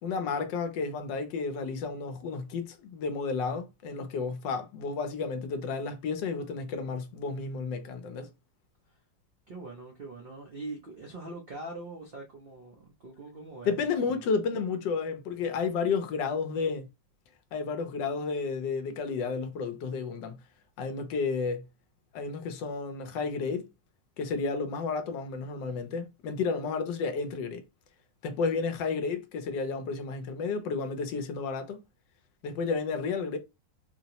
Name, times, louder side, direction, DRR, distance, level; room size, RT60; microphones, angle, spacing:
voice 1, 0.0-8.3 13.6-16.9 17.5-20.4 20.8-21.7 22.1-23.7 24.2-27.6 28.2-31.8 32.4-33.4, left 4 dB, 80° left, 1.3 m, -32 dB
voice 2, 9.5-14.3, right 2 dB, 70° right, 0.5 m, -43 dB
4.1 x 2.0 x 2.8 m
omnidirectional pair, 2.0 m